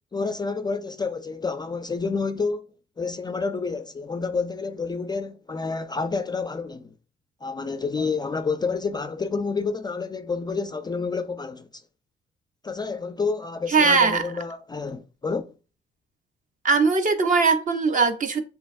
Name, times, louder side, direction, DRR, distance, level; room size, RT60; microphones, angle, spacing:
voice 1, 0.1-6.9 7.4-11.8 12.6-15.5, left 4 dB, 20° left, 0.3 m, -29 dB
voice 2, 13.7-14.2 16.6-18.4, right 4 dB, 40° right, 0.8 m, -20 dB
6.2 x 2.8 x 2.5 m
cardioid pair, 90°, 20 cm